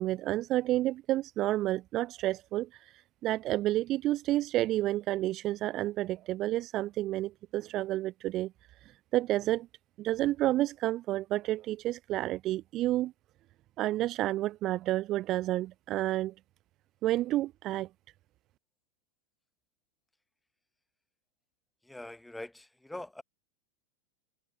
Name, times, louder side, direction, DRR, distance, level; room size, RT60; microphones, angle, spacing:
voice 1, 0.0-2.9 3.2-8.5 9.1-9.7 10.0-13.1 13.8-16.3 17.0-17.9, right 15 dB, 35° right, 0.4 m, -30 dB
voice 2, 21.8-23.2, left 1 dB, 5° left, 1.2 m, -43 dB
figure-of-eight pair, 90°, 0 cm